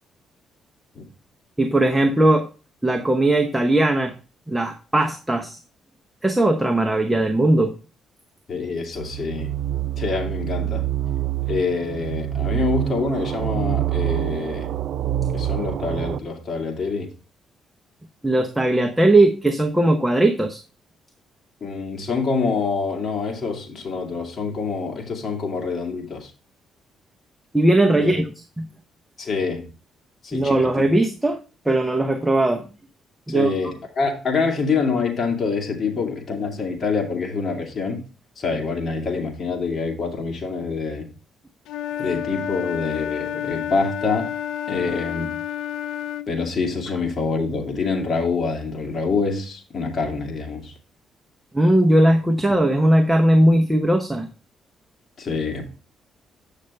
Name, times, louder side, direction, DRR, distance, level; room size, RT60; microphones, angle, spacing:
voice 1, 1.6-2.5 2.8-4.1 4.5-5.6 6.2-7.7 18.2-20.6 27.5-28.3 28.6-28.7 30.3-31.4 31.6-32.6 33.3-33.6 42.0-42.1 51.5-54.3, right 1 dB, 10° right, 0.9 m, -18 dB
voice 2, 8.5-9.6 10.0-10.9 11.4-14.7 15.3-17.1 21.6-26.3 28.0-28.2 29.2-29.7 30.2-30.9 33.3-38.0 38.4-41.1 42.0-44.3 44.7-45.4 46.3-50.7 55.2-55.6, left 4 dB, 45° left, 2.4 m, -26 dB
sound 1, 9.0-16.2, right 12 dB, 70° right, 0.5 m, -26 dB
Wind instrument woodwind instrument, 41.7-46.3, left 10 dB, 85° left, 0.4 m, -29 dB
8.3 x 6.5 x 3.3 m
cardioid pair, 90°, 0 cm